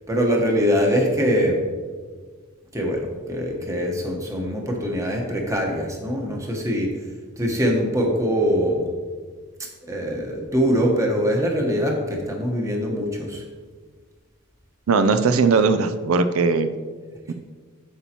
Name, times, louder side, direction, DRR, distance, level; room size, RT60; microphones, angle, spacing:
voice 1, 0.1-1.6 2.7-7.0 7.4-8.9 9.6-13.4, equal, 15° right, 1 dB, 1.0 m, -23 dB
voice 2, 14.9-16.7 17.3-17.4, right 4 dB, 80° right, 10 dB, 0.5 m, -19 dB
8.4 x 7.1 x 2.9 m, 1.5 s
head